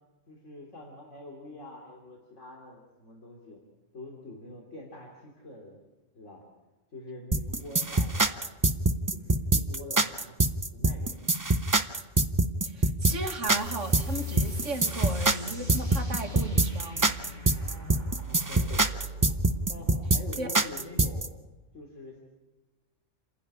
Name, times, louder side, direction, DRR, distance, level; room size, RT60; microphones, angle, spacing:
voice 1, 0.3-3.6 3.9-5.8 6.2-6.4 6.9-8.4 9.1-11.2 17.5-18.9 19.7-21.3 21.7-22.2, left 2 dB, 75° left, -1 dB, 3.4 m, -45 dB
sound 1, 7.3-21.3, right 2 dB, 20° right, 0.7 m, -24 dB
voice 2, 12.6-17.1 20.4-20.5, right 2 dB, 75° right, 4 dB, 2.2 m, -36 dB
sound 2, 13.5-20.6, equal, 35° right, 4.3 m, -39 dB
29.0 x 11.0 x 10.0 m, 1.2 s
omnidirectional pair, 1.3 m